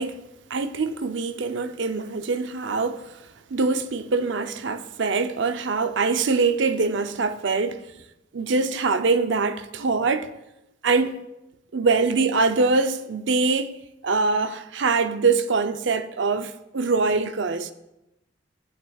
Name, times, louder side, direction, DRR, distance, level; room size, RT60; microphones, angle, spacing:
voice 1, 0.0-3.2 3.5-7.8 8.3-10.3 10.8-11.3 11.7-13.8 14.0-17.7, right 4 dB, 75° right, 0.6 m, -24 dB
14.5 x 9.0 x 2.3 m
head